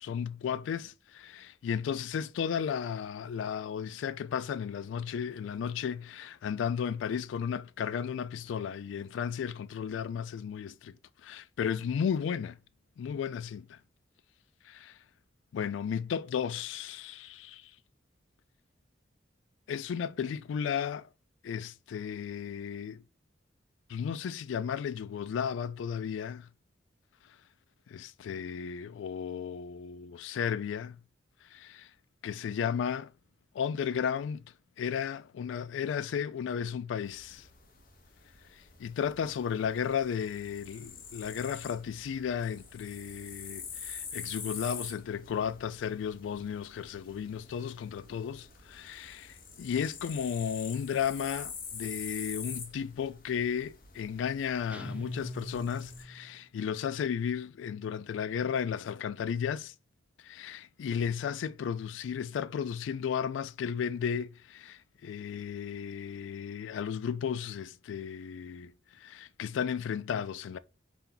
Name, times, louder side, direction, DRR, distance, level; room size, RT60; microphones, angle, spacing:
voice 1, 0.0-11.0 11.2-12.6 13.0-13.8 14.6-15.0 15.5-17.7 19.7-21.1 21.4-23.0 23.9-26.5 27.9-31.0 31.5-31.9 32.2-33.1 33.5-34.4 34.8-37.5 38.5-59.7 60.2-70.6, left 7 dB, 85° left, 0.3 m, -34 dB
sound 1, 37.1-56.0, left 6 dB, 50° left, 0.8 m, -46 dB
sound 2, 54.7-56.4, left 1 dB, 5° right, 0.3 m, -42 dB
4.5 x 2.8 x 3.8 m
head